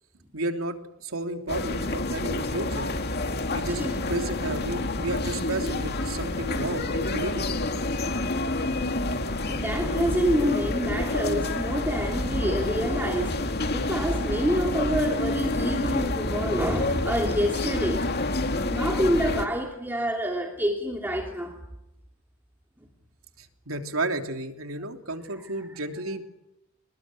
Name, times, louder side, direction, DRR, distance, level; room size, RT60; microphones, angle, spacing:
voice 1, 0.3-2.9 3.5-3.8 4.1-7.5 23.4-26.2, right 2 dB, 85° right, 3.3 m, -32 dB
sound 1, 1.5-19.5, left 2 dB, 50° left, 2.4 m, -28 dB
voice 2, 3.7-4.0 4.4-4.6 9.5-18.1 18.6-21.6, equal, 10° right, 2.9 m, -27 dB
28.5 x 20.5 x 9.9 m
head